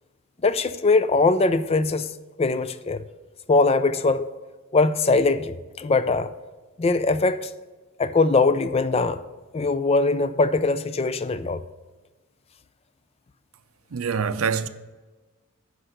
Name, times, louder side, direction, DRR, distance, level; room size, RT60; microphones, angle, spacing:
voice 1, 0.4-2.1 2.4-3.0 3.5-4.3 4.7-6.3 6.8-7.5 8.0-9.2 9.5-11.6, left 3 dB, 30° left, 0.4 m, -21 dB
voice 2, 13.9-14.7, right 6 dB, 80° right, 0.6 m, -25 dB
10.0 x 5.1 x 6.6 m
head